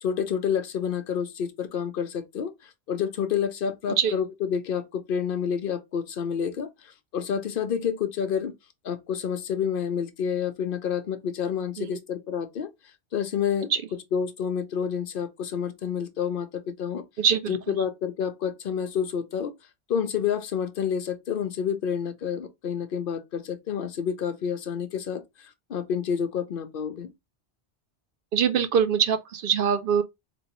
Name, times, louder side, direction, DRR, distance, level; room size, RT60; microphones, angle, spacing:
voice 1, 0.0-2.5 2.9-6.7 7.1-8.5 8.8-12.7 13.1-13.7 14.1-17.0 17.5-19.5 19.9-25.2 25.7-27.1, left 7 dB, 55° left, 0.8 m, -29 dB
voice 2, 17.2-17.8 28.3-30.0, right 7 dB, 60° right, 0.6 m, -23 dB
3.7 x 3.0 x 2.9 m
omnidirectional pair, 1.1 m